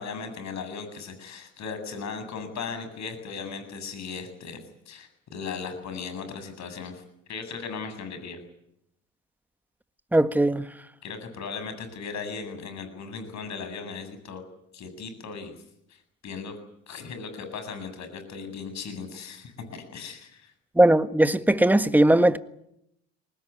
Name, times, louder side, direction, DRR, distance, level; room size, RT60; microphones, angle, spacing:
voice 1, 0.0-4.6 4.9-7.0 7.3-8.4 11.0-14.4 14.7-15.5 15.9-16.6 16.9-20.5, left 5 dB, 55° left, 8.0 m, -37 dB
voice 2, 10.1-10.6 20.7-22.4, right 1 dB, 5° right, 1.5 m, -19 dB
24.5 x 20.0 x 9.8 m
supercardioid pair, 75°, 34 cm